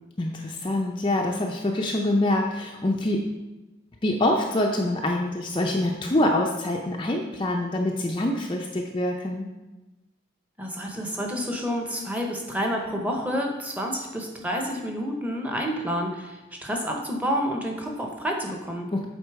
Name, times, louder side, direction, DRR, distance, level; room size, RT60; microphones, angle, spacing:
voice 1, 0.2-3.3 4.0-9.5 18.9-19.0, left 1 dB, 25° left, 1 dB, 0.5 m, -25 dB
voice 2, 10.6-18.9, equal, 10° right, 1 dB, 0.8 m, -29 dB
8.1 x 3.8 x 4.7 m, 1.1 s
head